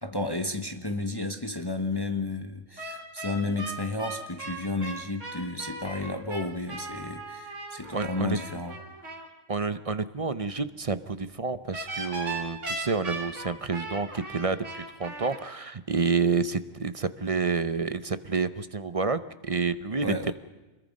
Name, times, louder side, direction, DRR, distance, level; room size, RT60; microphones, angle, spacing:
voice 1, 0.0-8.8 20.0-20.3, left 2 dB, 20° left, 6 dB, 1.2 m, -32 dB
sound 1, 2.8-9.3 11.7-15.4, right 2 dB, 70° right, 3.6 m, -38 dB
voice 2, 7.9-8.4 9.5-20.3, right 4 dB, 35° right, 13 dB, 0.7 m, -29 dB
27.5 x 21.5 x 5.4 m, 1.1 s
omnidirectional pair, 1.3 m